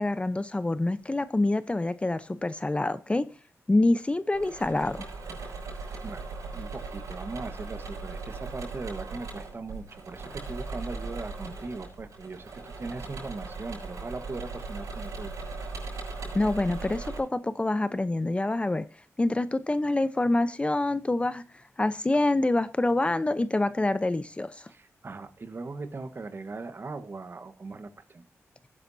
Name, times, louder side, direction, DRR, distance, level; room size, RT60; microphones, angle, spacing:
voice 1, 0.0-3.2 3.7-5.1 16.3-18.9 19.2-21.4 21.8-24.7, left 2 dB, 20° left, 14 dB, 0.7 m, -26 dB
Engine / Mechanisms, 4.3-17.2, right 3 dB, 80° right, 6.7 m, -39 dB
voice 2, 6.0-15.3 24.7-28.3, right 3 dB, 45° right, 9 dB, 1.3 m, -39 dB
18.0 x 9.9 x 2.7 m, 0.31 s
cardioid pair, 80°, 5 cm